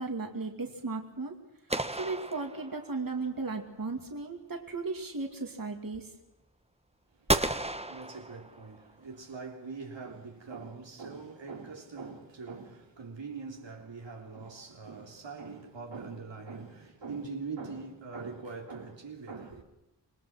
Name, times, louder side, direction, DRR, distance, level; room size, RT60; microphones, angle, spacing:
voice 1, 0.0-1.4 1.9-6.1, right 3 dB, 50° right, 2.6 m, -36 dB
sound 1, 1.7-3.2 7.3-8.9, right 1 dB, 15° right, 1.3 m, -32 dB
voice 2, 7.2-19.6, right 4 dB, 85° right, 3.2 m, -43 dB
27.0 x 20.5 x 6.0 m
wide cardioid pair, 80°, 43 cm